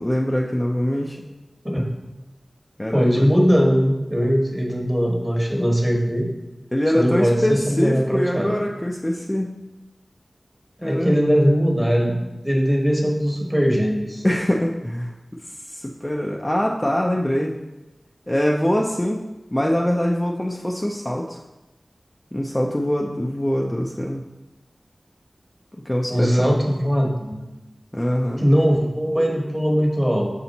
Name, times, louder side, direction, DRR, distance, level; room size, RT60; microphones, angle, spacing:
voice 1, 0.0-1.2 2.8-3.3 6.7-9.5 10.8-11.3 14.2-15.1 15.7-17.6 18.3-19.2 19.5-21.4 22.3-24.2 25.7-26.6 27.9-28.4, equal, 15° left, -1 dB, 0.5 m, -23 dB
voice 2, 2.9-6.3 6.9-8.5 10.8-14.2 26.1-27.4 28.4-30.3, equal, 15° right, 0 dB, 1.3 m, -20 dB
6.7 x 4.3 x 4.1 m, 1.0 s
wide cardioid pair, 65°, 0 cm